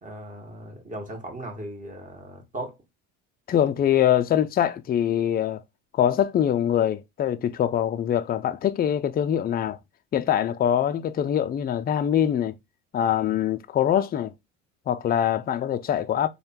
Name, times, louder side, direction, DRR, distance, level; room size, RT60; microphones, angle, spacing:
voice 1, 0.0-2.8, right 1 dB, 20° right, 1.4 m, -37 dB
voice 2, 3.5-5.6 5.9-9.8 10.1-12.5 12.9-14.3 14.9-16.3, left 10 dB, 25° left, 0.4 m, -23 dB
3.3 x 2.4 x 4.2 m
supercardioid pair, 80°, 36 cm